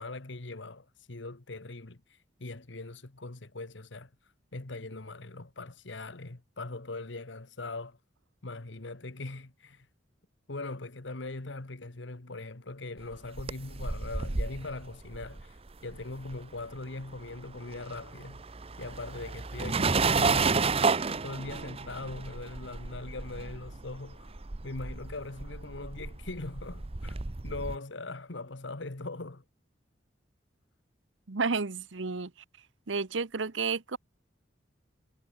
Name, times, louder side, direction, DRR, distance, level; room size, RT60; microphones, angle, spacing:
voice 1, 0.0-4.1 4.5-8.0 8.4-9.9 10.5-18.4 18.8-27.2 27.4-29.4, left 2 dB, 75° left, 1.5 m, -41 dB
sound 1, 13.1-16.8 17.0-27.8, right 4 dB, 30° right, 0.8 m, -32 dB
voice 2, 31.3-32.3 32.9-34.0, right 4 dB, 85° right, 1.0 m, -31 dB
head